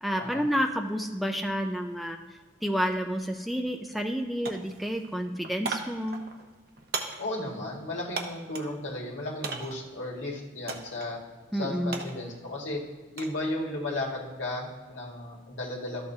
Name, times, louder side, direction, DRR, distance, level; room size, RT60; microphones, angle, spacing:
voice 1, 0.0-2.2 2.6-6.2 11.5-12.1, equal, ahead, 3 dB, 0.4 m, -30 dB
sound 1, 3.2-3.3 3.7-4.2 4.4-8.8 9.4-9.9 10.7-11.1 11.4-13.4 13.8-14.2, right 4 dB, 50° right, 0.8 m, -38 dB
voice 2, 7.2-11.2 11.5-12.8 13.1-16.1, left 1 dB, 80° left, -2 dB, 1.7 m, -34 dB
13.0 x 6.7 x 2.7 m, 1.4 s
head